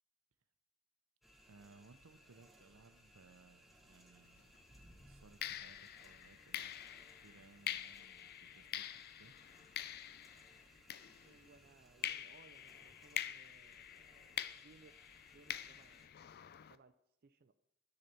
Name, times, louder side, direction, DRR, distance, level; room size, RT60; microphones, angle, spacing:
sound 1, 1.2-16.1, equal, ahead, 0.9 m, -65 dB
voice 1, 1.5-4.5 5.0-6.8 7.2-9.3, right 3 dB, 85° right, 10 dB, 0.8 m, -63 dB
sound 2, 4.3-4.5 5.4-11.6 12.0-16.8, left 11 dB, 50° left, 0.4 m, -46 dB
voice 2, 11.2-15.0 15.3-16.2 16.7-16.9 17.2-17.5, right 4 dB, 50° right, 9 dB, 0.4 m, -65 dB
11.0 x 4.1 x 6.8 m, 0.77 s
head